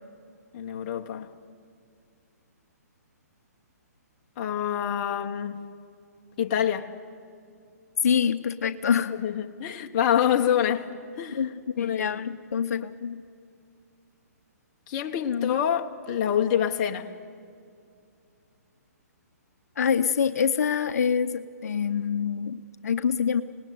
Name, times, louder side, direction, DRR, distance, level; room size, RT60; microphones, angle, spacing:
voice 1, 0.5-1.3 4.4-5.6 6.4-6.9 9.1-10.9 11.2-11.4 11.8-12.2 14.9-17.1, left 9 dB, 30° left, 1.2 m, -26 dB
voice 2, 8.0-9.1 11.3-11.5 11.8-13.2 15.2-15.6 19.8-23.4, left 7 dB, 65° left, 0.8 m, -26 dB
27.0 x 19.0 x 9.4 m
hypercardioid pair, 165°, 9 cm